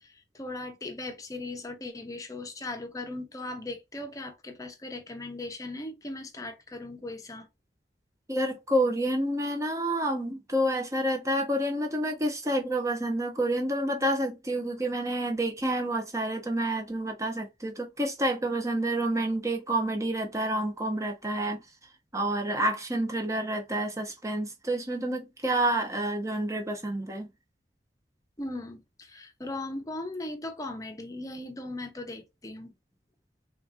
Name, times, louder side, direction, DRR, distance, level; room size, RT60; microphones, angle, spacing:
voice 1, 0.0-7.5 28.4-32.7, left 2 dB, 20° left, 0.8 m, -38 dB
voice 2, 8.3-21.6 22.1-27.3, right 1 dB, 20° right, 0.9 m, -29 dB
3.6 x 2.9 x 2.5 m
head